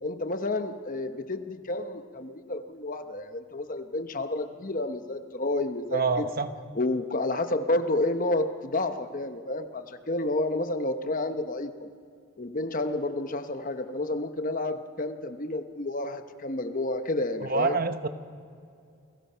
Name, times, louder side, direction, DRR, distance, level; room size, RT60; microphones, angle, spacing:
voice 1, 0.0-6.3 6.8-11.9 12.4-17.8, left 2 dB, 35° left, 8 dB, 1.0 m, -30 dB
voice 2, 5.9-6.5 17.4-18.1, right 4 dB, 40° right, 9 dB, 1.1 m, -26 dB
29.5 x 22.0 x 5.7 m, 2.4 s
head